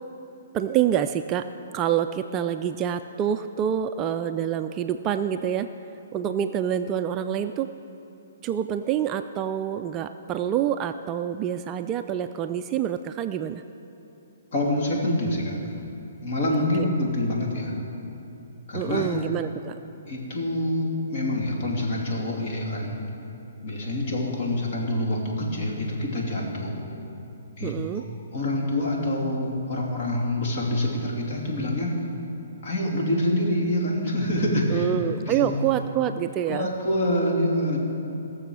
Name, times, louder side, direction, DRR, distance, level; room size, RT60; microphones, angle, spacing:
voice 1, 0.5-1.5 1.7-5.7 6.1-7.7 8.4-13.6 16.8-16.9 18.7-19.8 27.6-28.0 34.7-36.7, right 10 dB, 20° right, 8 dB, 0.3 m, -27 dB
voice 2, 14.5-15.6 16.2-17.7 18.7-19.2 20.1-23.0 23.6-26.8 27.6-28.0 28.3-31.9 32.6-34.9 35.3-35.6 36.5-37.8, left 1 dB, 45° left, -2 dB, 2.8 m, -26 dB
17.0 x 6.9 x 6.2 m, 3.0 s
hypercardioid pair, 155°, 0 cm